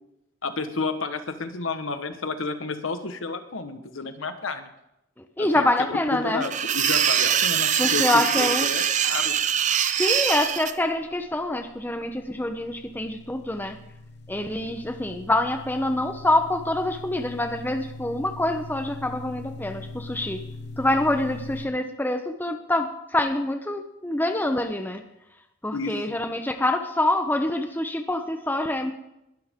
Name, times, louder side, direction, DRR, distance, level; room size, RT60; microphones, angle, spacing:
voice 1, 0.4-4.7 5.4-9.4 25.7-25.9, left 3 dB, 85° left, 9 dB, 1.3 m, -31 dB
voice 2, 5.2-6.4 7.3-7.4 7.8-8.7 10.0-13.8 14.3-20.4 20.8-25.0 25.6-28.9, left 1 dB, 10° left, 6 dB, 1.0 m, -26 dB
sound 1, 6.4-10.7, right 9 dB, 40° right, 0.6 m, -23 dB
sound 2, 10.8-21.7, left 2 dB, 55° left, 1.2 m, -42 dB
21.5 x 12.5 x 3.7 m, 0.85 s
head